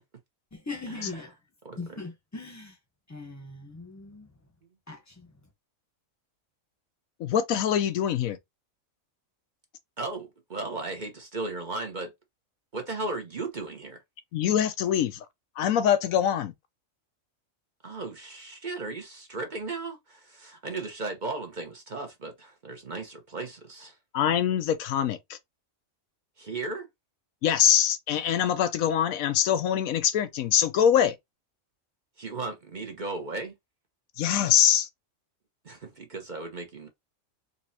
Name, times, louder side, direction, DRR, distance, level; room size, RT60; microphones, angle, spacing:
voice 1, 0.5-1.3 1.8-2.8 3.1-4.3 4.9-5.3, left 3 dB, 15° left, 0.8 m, -40 dB
voice 2, 1.6-2.0 10.0-12.1 12.7-14.0 17.8-24.0 26.4-26.9 32.2-33.5 35.6-36.9, right 3 dB, 40° right, 0.9 m, -36 dB
voice 3, 7.2-8.4 14.3-15.2 15.6-16.5 24.1-25.4 27.4-31.2 34.2-34.9, left 9 dB, 90° left, 1.1 m, -24 dB
4.1 x 3.0 x 2.7 m
omnidirectional pair, 1.4 m